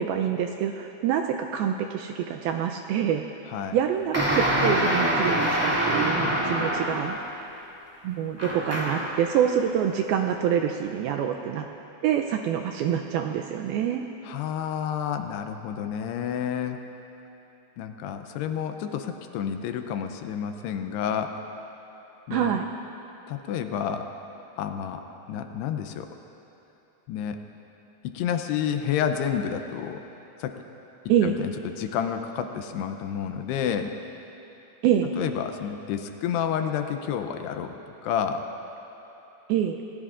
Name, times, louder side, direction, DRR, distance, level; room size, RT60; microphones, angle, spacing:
voice 1, 0.0-3.2 3.7-7.2 8.0-11.7 12.0-14.1 22.3-22.6 31.1-31.4 34.8-35.1 39.5-39.8, right 9 dB, 85° right, 4 dB, 2.2 m, -26 dB
sound 1, 4.1-7.2 8.4-9.2, equal, 15° right, 0.5 m, -25 dB
voice 2, 14.2-16.8 17.8-21.4 22.3-22.6 23.3-24.1 24.6-26.1 27.1-27.4 28.0-30.0 30.4-30.6 31.2-33.9 35.2-38.4, left 8 dB, 80° left, 7 dB, 2.6 m, -30 dB
27.5 x 19.0 x 2.5 m, 3.0 s
omnidirectional pair, 4.9 m